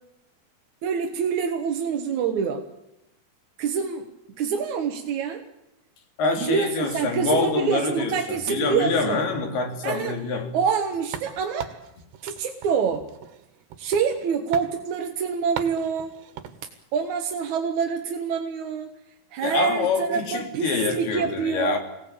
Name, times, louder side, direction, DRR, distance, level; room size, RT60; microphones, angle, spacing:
voice 1, 0.8-2.6 3.6-4.1 4.4-5.4 6.4-9.2 9.8-10.2 10.5-11.8 12.2-13.1 13.8-16.1 16.9-18.9 19.3-21.8, right 6 dB, 60° right, 4 dB, 2.4 m, -26 dB
voice 2, 6.2-10.6 19.4-21.8, left 4 dB, 70° left, 4 dB, 5.1 m, -26 dB
sound 1, 11.1-14.3 14.5-14.7 15.6-16.6, right 9 dB, 85° right, 3.8 m, -39 dB
25.0 x 18.5 x 8.8 m, 0.88 s
omnidirectional pair, 4.7 m